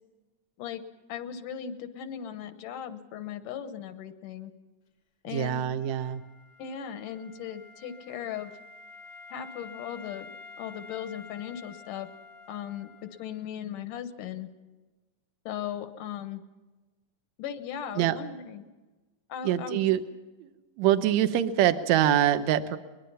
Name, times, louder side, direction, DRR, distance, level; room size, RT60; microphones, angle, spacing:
voice 1, 1.1-4.5 5.2-5.7 6.6-8.6 9.3-10.3 10.6-12.1 12.5-14.5 15.5-16.4 17.4-18.7 19.3-19.8, left 9 dB, 90° left, 9 dB, 2.7 m, -37 dB
voice 2, 5.3-6.2 18.0-18.2 19.4-20.0 20.4-20.5 20.8-22.8, right 11 dB, 70° right, 11 dB, 2.1 m, -24 dB
Wind instrument woodwind instrument, 5.8-13.6, left 3 dB, 55° left, 1.0 m, -49 dB
22.5 x 21.5 x 5.6 m, 1.2 s
omnidirectional pair, 3.6 m